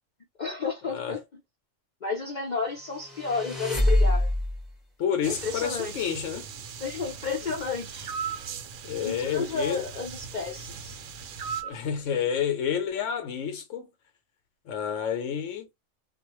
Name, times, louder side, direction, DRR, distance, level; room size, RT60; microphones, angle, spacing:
voice 1, 0.4-1.4 2.0-4.3 5.3-6.2 6.8-8.1 9.0-11.0, left 4 dB, 45° left, 0.6 m, -32 dB
sound 1, 2.9-4.7, left 1 dB, ahead, 0.6 m, -24 dB
voice 2, 5.0-6.5 8.8-9.8 11.6-13.9 14.7-15.8, left 8 dB, 75° left, 0.9 m, -29 dB
sound 2, 5.2-11.6, right 6 dB, 90° right, 1.0 m, -41 dB
sound 3, 8.1-8.5 11.4-11.8, right 7 dB, 55° right, 0.8 m, -32 dB
2.4 x 2.1 x 2.9 m
omnidirectional pair, 1.3 m